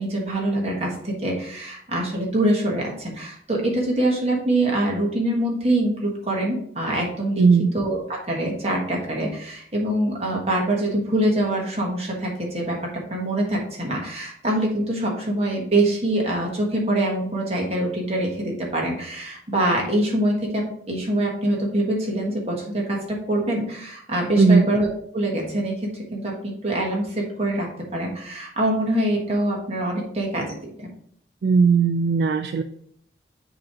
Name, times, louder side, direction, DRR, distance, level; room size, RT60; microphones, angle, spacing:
voice 1, 0.0-7.4 7.7-24.9 25.1-30.9, right 1 dB, 35° right, -1 dB, 1.5 m, -24 dB
voice 2, 7.4-7.7 24.4-24.7 31.4-32.6, right 4 dB, 65° right, 8 dB, 0.3 m, -17 dB
7.5 x 3.0 x 4.8 m, 0.66 s
head